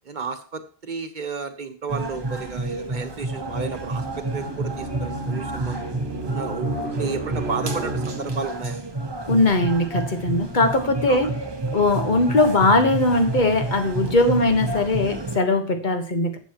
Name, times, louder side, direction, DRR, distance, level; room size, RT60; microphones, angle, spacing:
voice 1, 0.0-5.8 6.2-8.8 11.1-11.3, right 4 dB, 50° right, 8 dB, 1.3 m, -32 dB
sound 1, 1.9-15.4, right 2 dB, 25° right, 0.9 m, -30 dB
sound 2, 3.2-8.7, right 2 dB, 85° right, 1.4 m, -33 dB
voice 2, 9.3-11.3 11.7-16.4, left 2 dB, 50° left, 7 dB, 1.4 m, -20 dB
12.0 x 8.3 x 3.0 m, 0.41 s
omnidirectional pair, 1.0 m